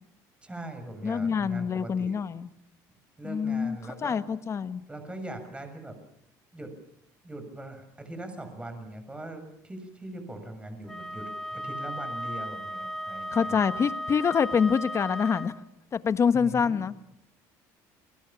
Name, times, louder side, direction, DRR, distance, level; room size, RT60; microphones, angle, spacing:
voice 1, 0.4-2.2 3.2-4.2 4.9-6.0 6.5-6.7 7.2-13.7 16.3-16.8, right 1 dB, 10° right, 7 dB, 6.9 m, -41 dB
voice 2, 1.0-2.5 3.2-4.8 13.3-15.5 15.9-16.9, left 6 dB, 35° left, 12 dB, 1.4 m, -26 dB
Wind instrument woodwind instrument, 10.9-15.6, left 1 dB, 5° left, 2.4 m, -35 dB
28.5 x 21.0 x 7.3 m, 0.73 s
supercardioid pair, 100°, 8 cm